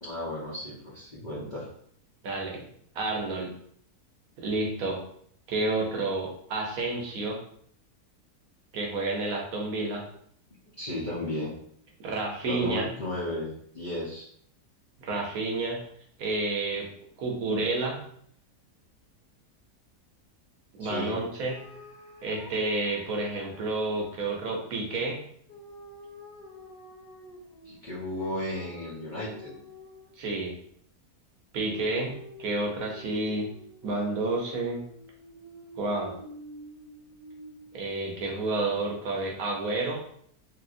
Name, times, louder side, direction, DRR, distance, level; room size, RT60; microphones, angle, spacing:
voice 1, 0.0-1.7 10.8-11.5 12.4-14.3 20.8-21.2 27.6-29.5, left 1 dB, 40° left, -8 dB, 0.7 m, -34 dB
voice 2, 2.2-2.6 2.9-3.5 4.4-5.0 5.5-7.4 8.7-10.0 12.0-12.9 15.0-15.8 16.2-16.9 17.2-18.0 20.8-21.5 22.2-25.3 30.2-30.5 31.5-33.5 33.8-34.8 35.8-36.1 37.7-40.0, right 2 dB, 70° right, 0 dB, 1.1 m, -30 dB
sound 1, 21.5-24.4 25.5-30.3 31.7-37.8, equal, 85° left, 0.3 m, -48 dB
3.2 x 2.7 x 2.5 m, 0.64 s
omnidirectional pair, 1.7 m